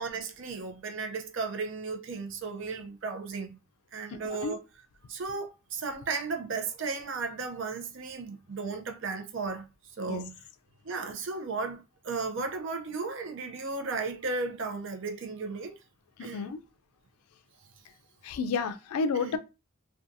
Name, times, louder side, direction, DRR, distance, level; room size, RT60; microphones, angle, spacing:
voice 1, 0.0-3.6 3.9-4.6 5.1-9.7 10.0-10.4 10.8-15.7 16.2-16.5 19.2-19.4, right 4 dB, 60° right, 0.5 m, -35 dB
voice 2, 4.1-4.5 10.1-10.2 16.2-16.6 18.2-19.4, left 4 dB, 90° left, 0.3 m, -31 dB
2.5 x 2.3 x 2.6 m
head